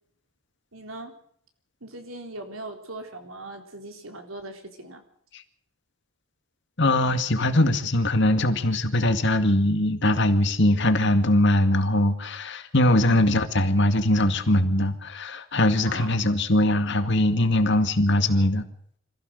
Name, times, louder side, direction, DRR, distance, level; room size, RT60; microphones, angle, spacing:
voice 1, 0.7-1.1 1.8-5.0 13.1-13.4 15.9-16.2, right 2 dB, 80° right, 4 dB, 3.8 m, -39 dB
voice 2, 6.8-18.6, left 1 dB, 60° left, 8 dB, 2.1 m, -21 dB
25.5 x 15.5 x 6.7 m, 0.65 s
head